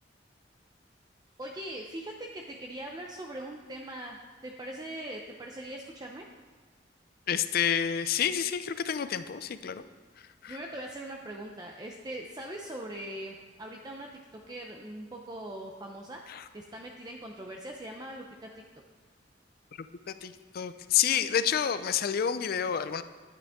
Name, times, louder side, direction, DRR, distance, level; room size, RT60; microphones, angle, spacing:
voice 1, 1.4-4.2 4.4-6.3 10.5-16.2 16.5-18.5, right 1 dB, 20° right, 1 dB, 0.6 m, -41 dB
voice 2, 7.3-9.8 10.2-10.6 16.3-16.4 19.8-23.0, left 8 dB, 55° left, 12 dB, 0.4 m, -29 dB
9.6 x 8.7 x 3.6 m, 1.5 s
head